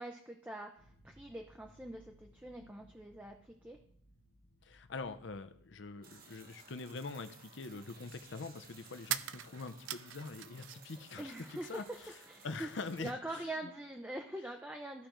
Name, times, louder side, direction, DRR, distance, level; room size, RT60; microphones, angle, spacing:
voice 1, 0.0-3.8 11.2-12.7 13.0-15.1, right 1 dB, 10° right, 3 dB, 0.5 m, -44 dB
sound 1, 0.8-6.4, equal, 85° left, 1.3 m, -64 dB
voice 2, 4.6-11.8 12.4-13.5, left 3 dB, 65° left, 9 dB, 0.7 m, -44 dB
sound 2, 6.0-13.1, right 4 dB, 45° right, 1.1 m, -58 dB
Light Electronics Shaking, 6.8-6.9 9.0-11.0 11.3-12.1, right 11 dB, 75° right, 0.4 m, -42 dB
14.5 x 5.0 x 3.0 m, 0.67 s
head